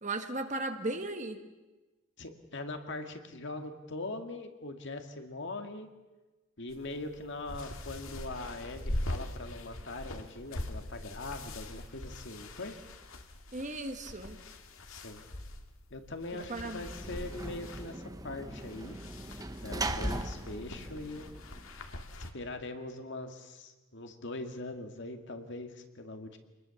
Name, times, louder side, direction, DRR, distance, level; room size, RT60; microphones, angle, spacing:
voice 1, 0.0-1.4 13.5-14.4 16.3-16.8, right 2 dB, 35° right, 7 dB, 1.7 m, -36 dB
voice 2, 2.2-5.9 6.6-12.8 14.9-15.2 15.9-19.0 19.6-21.3 22.1-26.4, left 2 dB, 55° left, 6 dB, 2.2 m, -41 dB
sound 1, 6.7-22.3, left 1 dB, 75° left, 2.1 m, -42 dB
Sliding door / Slam, 16.5-21.9, right 2 dB, 15° right, 1.1 m, -40 dB
27.0 x 20.5 x 7.2 m, 1.1 s
head